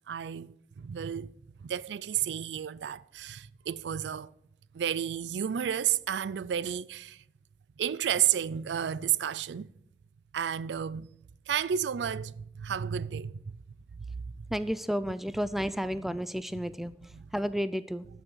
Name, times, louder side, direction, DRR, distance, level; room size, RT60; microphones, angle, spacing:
voice 1, 0.1-1.3 1.6-4.3 4.7-7.2 7.8-9.7 10.3-11.1 11.5-13.4 15.9-16.2 16.5-17.3, right 9 dB, 80° right, 0.4 m, -32 dB
voice 2, 14.5-16.9 17.3-18.1, equal, ahead, 0.3 m, -31 dB
13.0 x 6.2 x 6.4 m
head